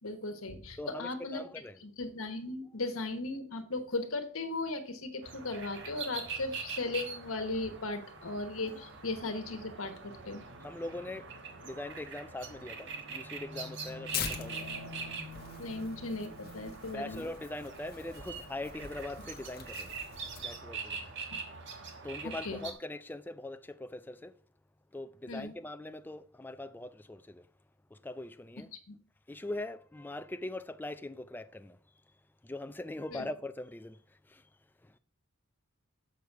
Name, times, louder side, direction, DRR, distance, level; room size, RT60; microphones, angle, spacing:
voice 1, 0.0-1.4 1.8-10.5 15.6-17.2 22.2-22.6 25.3-25.5 28.9-29.0 33.1-33.3, left 2 dB, 75° left, 1.2 m, -37 dB
voice 2, 0.8-1.8 10.6-11.3 11.6-14.7 16.9-19.9 20.4-21.1 22.0-24.3 24.9-27.5 27.9-28.7 29.3-31.8 32.4-34.5 34.8-35.0, left 2 dB, 10° left, 0.3 m, -42 dB
sound 1, 5.2-22.7, right 4 dB, 60° right, 1.3 m, -43 dB
Tearing, 14.1-20.6, left 7 dB, 45° left, 1.0 m, -44 dB
6.7 x 6.5 x 4.6 m
head